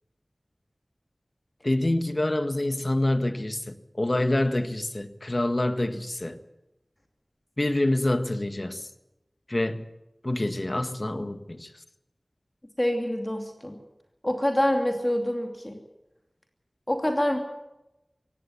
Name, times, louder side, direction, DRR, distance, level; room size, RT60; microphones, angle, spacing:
voice 1, 1.6-6.4 7.6-8.9 9.5-9.9 10.2-11.7, left 1 dB, 45° left, 10 dB, 1.6 m, -26 dB
voice 2, 12.8-13.8 14.2-15.8 16.9-17.4, left 1 dB, 25° left, 4 dB, 2.7 m, -26 dB
17.0 x 16.0 x 9.5 m, 0.94 s
wide cardioid pair, 45°, 0 cm